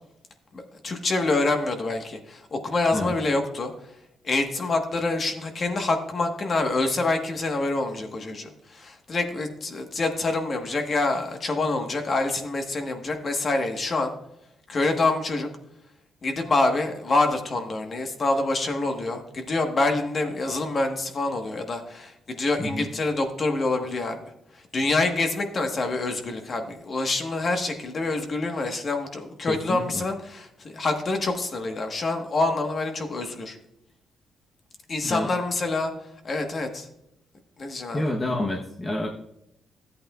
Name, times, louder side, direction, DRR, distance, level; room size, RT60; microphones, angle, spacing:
voice 1, 0.5-3.7 4.2-14.1 14.7-15.5 16.2-24.2 24.5-33.6 34.9-35.9 36.2-36.9 37.6-38.1, left 2 dB, 40° left, 5 dB, 1.4 m, -26 dB
voice 2, 29.5-30.0 35.0-35.3 37.9-39.1, left 1 dB, 25° left, 0 dB, 1.0 m, -28 dB
13.5 x 8.4 x 2.4 m, 0.80 s
cardioid pair, 115°, 0 cm